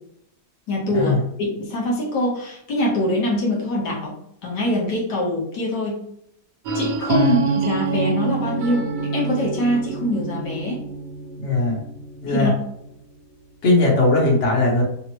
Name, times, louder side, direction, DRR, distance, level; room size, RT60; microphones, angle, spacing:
voice 1, 0.7-4.1 4.4-6.0 6.7-10.8 12.3-12.5, left 1 dB, 80° left, -4 dB, 1.8 m, -24 dB
sound 1, 6.7-12.4, right 4 dB, 90° right, 1.3 m, -26 dB
voice 2, 11.4-11.8 12.2-12.5 13.6-14.8, left 2 dB, 45° left, -3 dB, 1.4 m, -19 dB
5.6 x 2.2 x 3.0 m, 0.73 s
omnidirectional pair, 1.8 m